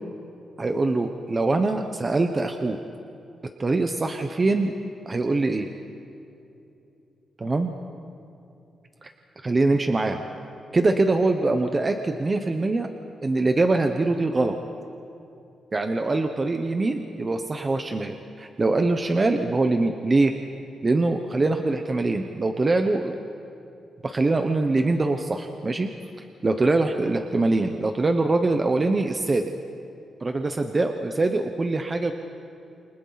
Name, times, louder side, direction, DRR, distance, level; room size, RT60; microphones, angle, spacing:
voice 1, 0.6-2.8 3.6-4.7 5.1-5.7 7.4-7.7 9.0-9.1 9.4-10.3 10.7-12.9 13.2-14.6 15.7-20.3 20.8-23.1 24.0-25.9 26.2-29.5 30.2-32.1, right 2 dB, 20° right, 5 dB, 0.8 m, -23 dB
30.0 x 28.5 x 4.0 m, 2.8 s
wide cardioid pair, 175°, 0 cm